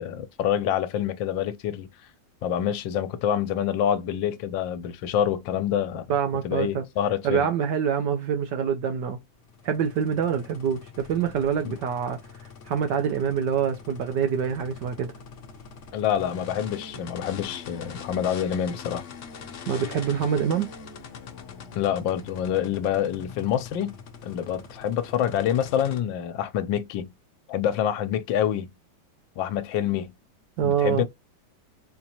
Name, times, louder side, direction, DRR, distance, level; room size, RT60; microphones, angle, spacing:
voice 1, 0.0-1.9 2.4-6.1 6.4-7.5 11.6-11.7 15.9-19.1 21.8-24.0 24.2-27.1 27.5-28.7 29.4-30.1 30.6-31.1, left 10 dB, 80° left, 1.3 m, -26 dB
voice 2, 6.1-6.8 7.2-9.2 9.6-12.2 12.7-15.1 19.7-20.7 30.6-31.1, right 7 dB, 70° right, 1.3 m, -25 dB
sound 1, 9.4-26.0, left 6 dB, 55° left, 0.8 m, -43 dB
4.5 x 2.6 x 2.8 m
omnidirectional pair, 2.1 m